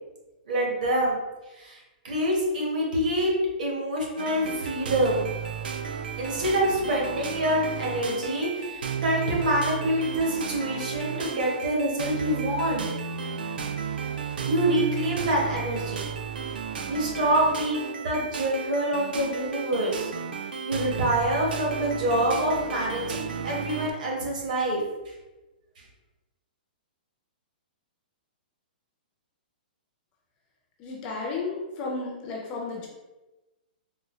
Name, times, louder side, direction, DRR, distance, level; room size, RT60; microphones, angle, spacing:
voice 1, 0.5-1.2 1.6-3.3 3.6-5.3 6.2-12.9 14.4-16.1 16.9-20.1 20.6-24.8, right 1 dB, 55° right, -2 dB, 1.1 m, -26 dB
sound 1, 4.2-23.9, right 7 dB, 75° right, 0.4 m, -33 dB
voice 2, 30.8-32.9, left 3 dB, 20° left, -2 dB, 0.3 m, -33 dB
3.8 x 2.1 x 3.0 m, 1.1 s
hypercardioid pair, 180°, 5 cm